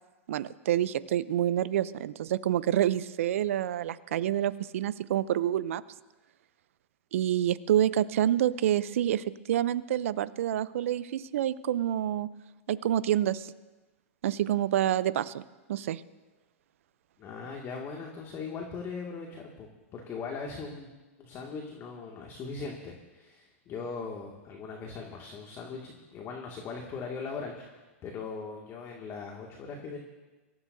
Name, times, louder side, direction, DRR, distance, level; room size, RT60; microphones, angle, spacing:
voice 1, 0.3-5.8 7.1-12.3 12.7-13.5 14.2-15.4 15.7-16.0, right 11 dB, 65° right, 17 dB, 0.6 m, -27 dB
voice 2, 17.2-20.9 21.2-30.0, left 4 dB, 35° left, 0 dB, 2.2 m, -40 dB
24.5 x 15.0 x 2.7 m, 1.2 s
hypercardioid pair, 110°, 8 cm